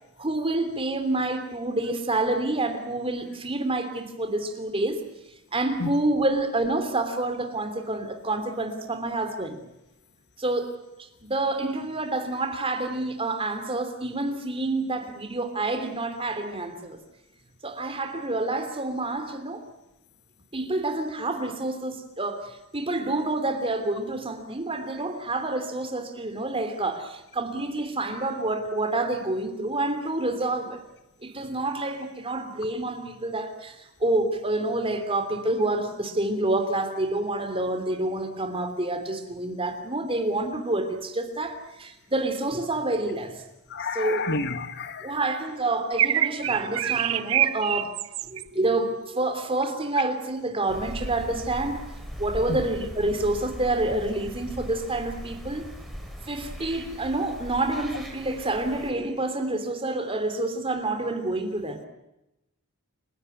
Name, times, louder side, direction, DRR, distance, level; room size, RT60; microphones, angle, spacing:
voice 1, 0.2-5.0 5.5-9.6 10.4-10.8 11.2-17.0 17.6-19.6 20.5-30.8 31.2-43.4 43.9-44.3 45.0-48.0 48.3-51.8 52.2-55.6 56.3-61.8, right 2 dB, 25° right, 3.1 m, -28 dB
voice 2, 43.7-45.1 52.5-52.6, left 3 dB, 55° left, 1.7 m, -30 dB
sound 1, 45.9-48.4, right 11 dB, 65° right, 0.9 m, -25 dB
sound 2, 50.7-58.9, equal, ahead, 4.7 m, -39 dB
29.5 x 17.0 x 9.3 m
head